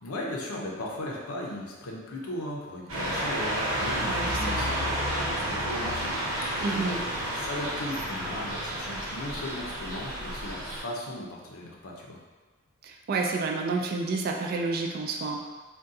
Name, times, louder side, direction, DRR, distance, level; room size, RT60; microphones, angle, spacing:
voice 1, 0.0-6.1 6.7-7.0 7.3-12.2, left 1 dB, 80° left, -2 dB, 0.6 m, -37 dB
sound 1, 2.9-10.8, right 1 dB, 80° right, 1.0 m, -31 dB
voice 2, 4.0-4.7 6.6-7.0 12.8-15.5, right 3 dB, 45° right, 1 dB, 0.3 m, -30 dB
3.7 x 2.3 x 2.6 m, 1.3 s
head